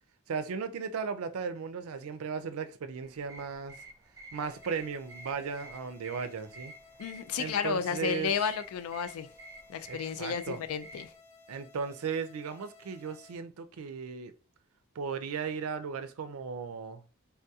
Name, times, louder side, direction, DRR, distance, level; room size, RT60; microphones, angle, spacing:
voice 1, 0.3-3.8 4.3-6.7 7.4-8.3 9.9-10.6 11.5-14.3 15.0-17.0, right 6 dB, 75° right, 0.4 m, -36 dB
sound 1, 3.0-11.1, right 1 dB, 15° right, 0.5 m, -51 dB
sound 2, 4.4-13.4, left 4 dB, 25° left, 0.7 m, -57 dB
voice 2, 7.0-9.3 9.7-11.1, left 7 dB, 75° left, 0.3 m, -32 dB
3.4 x 2.3 x 2.7 m
head